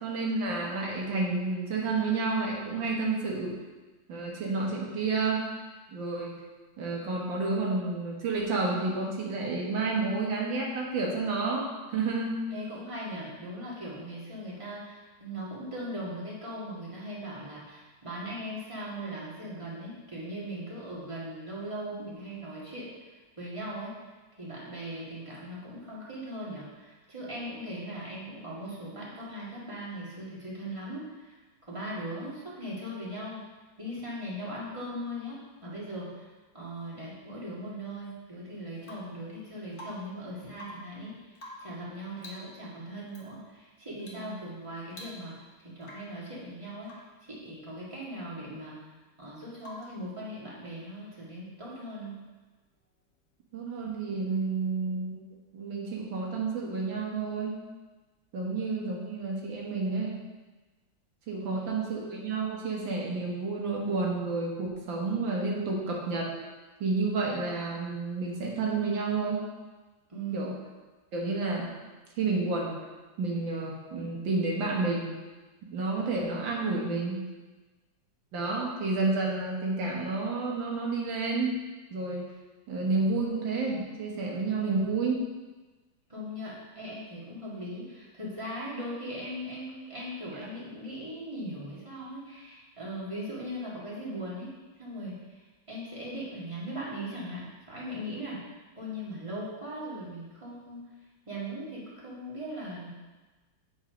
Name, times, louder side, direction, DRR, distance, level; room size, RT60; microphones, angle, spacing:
voice 1, 0.0-3.5 4.1-5.4 5.9-6.4 6.8-12.4 21.9-22.1 44.1-44.4 53.5-55.2 55.5-57.6 58.3-60.2 61.3-66.3 66.8-69.4 70.3-70.5 71.1-71.7 72.2-72.8 73.2-75.1 75.7-77.2 78.3-81.6 81.9-82.3 82.7-85.2, right 3 dB, 85° right, -2 dB, 2.1 m, -30 dB
voice 2, 12.5-24.0 24.4-31.4 31.7-33.5 33.8-36.3 36.5-48.9 49.2-52.2 58.4-58.5 61.4-61.6 70.1-70.6 86.1-98.4 98.8-100.9 101.3-102.9, equal, 15° right, -7 dB, 2.1 m, -39 dB
Rain / Water tap faucet / Drip, 38.8-39.2 39.7-40.2 40.5-41.0 41.4-41.8 42.2-42.5 43.1-43.3 44.0-44.3 44.6-44.7 44.9-45.5 45.8-46.2 46.8-47.2 49.6-50.0 51.9-52.0, left 1 dB, 40° left, 1.4 m, -47 dB
8.5 x 4.8 x 5.1 m, 1.2 s
omnidirectional pair, 2.0 m